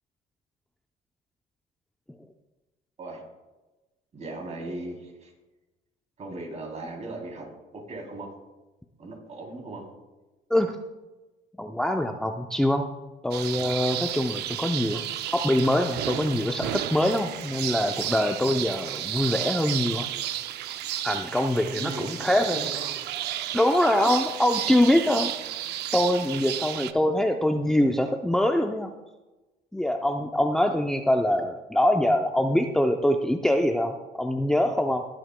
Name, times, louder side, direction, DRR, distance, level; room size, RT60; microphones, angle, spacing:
voice 1, 4.1-5.3 6.2-7.5 7.7-8.3 9.0-9.8 21.7-23.0, right 2 dB, 40° right, 0 dB, 3.2 m, -38 dB
voice 2, 11.6-12.9 13.2-15.0 15.3-20.1 21.0-22.6 23.5-25.3 25.9-28.9 29.7-35.1, left 1 dB, 5° left, 4 dB, 0.5 m, -24 dB
sound 1, 13.3-26.9, right 12 dB, 80° right, 0.6 m, -32 dB
20.5 x 7.8 x 2.2 m, 1.1 s
cardioid pair, 110°, 17 cm